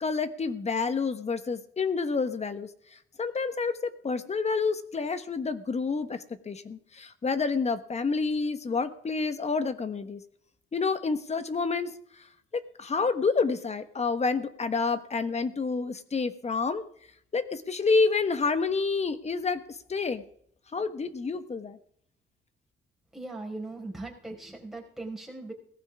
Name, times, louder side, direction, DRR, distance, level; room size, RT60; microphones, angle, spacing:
voice 1, 0.0-10.2 10.7-12.3 12.5-16.8 17.3-20.2 20.7-21.8, left 4 dB, 35° left, 11 dB, 1.3 m, -29 dB
voice 2, 23.1-25.5, right 2 dB, ahead, -2 dB, 4.9 m, -39 dB
18.0 x 14.5 x 3.6 m, 0.64 s
cardioid pair, 90°, 20 cm